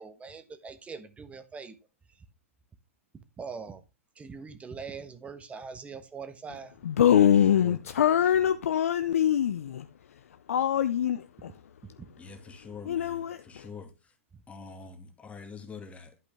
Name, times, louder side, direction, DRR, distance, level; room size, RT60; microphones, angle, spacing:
voice 1, 0.0-1.7 3.4-3.8 4.2-6.8 12.0-12.1 14.3-14.4, right 5 dB, 15° right, 1.3 m, -42 dB
voice 2, 6.8-11.6 12.9-13.7, left 9 dB, 75° left, 0.5 m, -24 dB
voice 3, 7.6-8.0 12.2-14.1 14.5-16.2, left 5 dB, 15° left, 2.0 m, -45 dB
11.5 x 5.2 x 3.5 m
hypercardioid pair, 105°, 8 cm